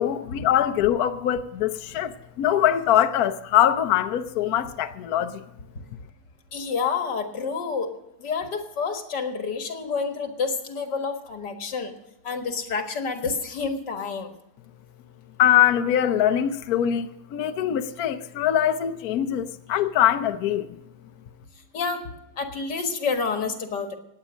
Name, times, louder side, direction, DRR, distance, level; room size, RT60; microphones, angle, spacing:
voice 1, 0.0-5.4 15.4-20.8, left 11 dB, 65° left, 1.1 m, -23 dB
voice 2, 6.5-12.0 12.2-14.3 21.5-24.0, left 5 dB, 90° left, 2.3 m, -29 dB
18.5 x 8.9 x 6.2 m
omnidirectional pair, 1.8 m